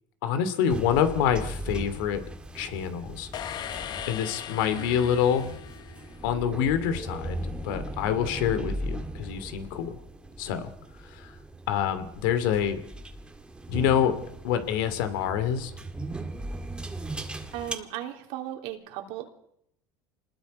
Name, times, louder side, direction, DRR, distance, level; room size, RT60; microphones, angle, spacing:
voice 1, 0.2-2.2 2.5-3.3 4.1-5.5 6.2-10.0 10.4-10.7 11.1-11.3 11.7-12.8 13.7-14.1 14.4-15.7, left 9 dB, 80° left, 10 dB, 2.6 m, -26 dB
sound 1, 0.7-17.7, right 1 dB, 10° right, 1.9 m, -38 dB
sound 2, 3.3-6.5, left 10 dB, 40° left, 1.0 m, -39 dB
voice 2, 17.5-19.3, right 12 dB, 65° right, 3 dB, 3.3 m, -36 dB
26.5 x 20.0 x 5.3 m, 0.72 s
supercardioid pair, 135°, 11 cm